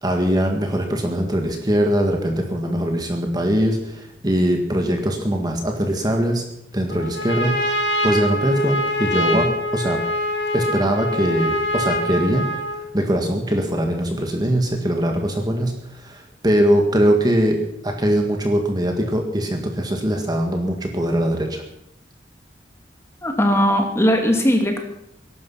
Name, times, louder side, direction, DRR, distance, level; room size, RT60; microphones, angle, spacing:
voice 1, 0.0-6.4 6.7-10.0 10.5-12.5 12.8-21.6, equal, 20° right, 3 dB, 1.8 m, -21 dB
Trumpet, 6.9-12.9, left 1 dB, 75° left, 2.6 m, -24 dB
voice 2, 23.2-24.8, equal, 15° left, 3 dB, 2.5 m, -18 dB
21.0 x 12.0 x 5.7 m, 0.78 s
head